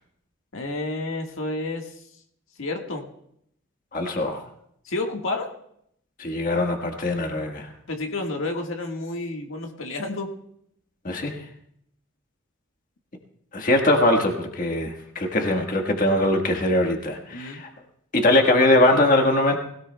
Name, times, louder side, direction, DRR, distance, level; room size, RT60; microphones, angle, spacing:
voice 1, 0.5-1.9 2.6-3.1 4.8-5.5 7.9-10.3 17.3-17.6, left 2 dB, 85° left, 2 dB, 1.6 m, -30 dB
voice 2, 3.9-4.4 6.2-7.7 11.0-11.4 13.5-17.7 18.1-19.6, left 1 dB, 45° left, 3 dB, 1.5 m, -21 dB
20.5 x 17.5 x 2.3 m, 0.71 s
head